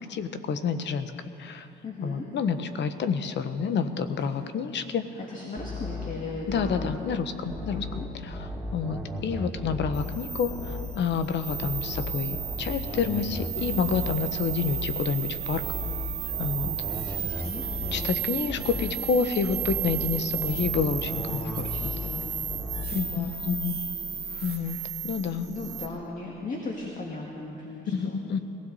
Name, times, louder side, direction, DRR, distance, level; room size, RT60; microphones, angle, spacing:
voice 1, 0.1-1.1 1.4-1.7 2.0-5.1 6.5-7.9 8.2-15.6 16.4-16.7 17.9-21.7 22.9-23.8 24.4-24.8 25.0-25.5 27.9-28.4, left 6 dB, 65° left, 10 dB, 1.0 m, -29 dB
voice 2, 1.8-2.3 5.2-6.9 7.6-8.1 16.6-18.3 18.7-19.0 21.3-23.6 24.5-24.8 25.2-28.2, left 2 dB, 40° left, -1 dB, 2.1 m, -38 dB
sound 1, 5.6-7.0 7.5-10.2 10.5-11.0 11.5-15.0 15.5-18.2 18.5-19.0 19.5-22.2 22.5-23.0, left 2 dB, 5° left, 4.3 m, -36 dB
sound 2, 9.9-25.9, right 9 dB, 55° right, 1.6 m, -34 dB
22.0 x 16.0 x 4.1 m, 2.9 s
cardioid pair, 90°, 20 cm